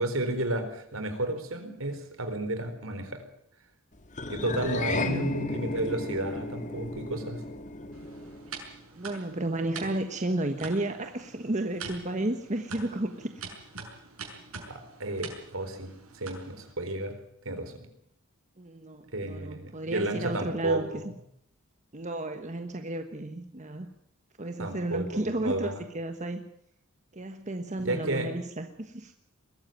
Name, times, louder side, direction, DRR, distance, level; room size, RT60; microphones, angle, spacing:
voice 1, 0.0-3.2 4.3-7.4 14.7-17.1 17.4-17.7 19.1-21.1 24.6-25.1 25.4-25.8 27.8-28.3, right 1 dB, 70° right, 8 dB, 4.2 m, -32 dB
sound 1, 4.1-8.7, left 2 dB, 35° left, 1.7 m, -34 dB
voice 2, 5.0-5.4 8.9-13.4 18.6-21.1 21.9-23.9 24.4-26.4 27.1-29.1, right 1 dB, 35° right, 6 dB, 1.3 m, -33 dB
sound 2, 7.9-16.7, right 4 dB, 85° right, 6.3 m, -45 dB
22.0 x 14.5 x 9.2 m, 0.73 s
head